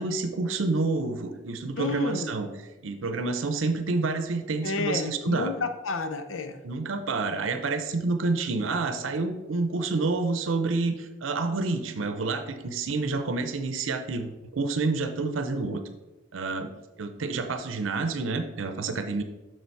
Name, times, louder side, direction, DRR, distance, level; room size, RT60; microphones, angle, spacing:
voice 1, 0.0-2.5 2.8-5.5 6.6-15.8 16.3-16.7 17.0-19.2, right 3 dB, 85° right, 8 dB, 0.7 m, -28 dB
voice 2, 1.8-2.3 4.6-6.6, left 3 dB, 90° left, 8 dB, 0.7 m, -30 dB
6.8 x 6.2 x 4.6 m, 1.1 s
head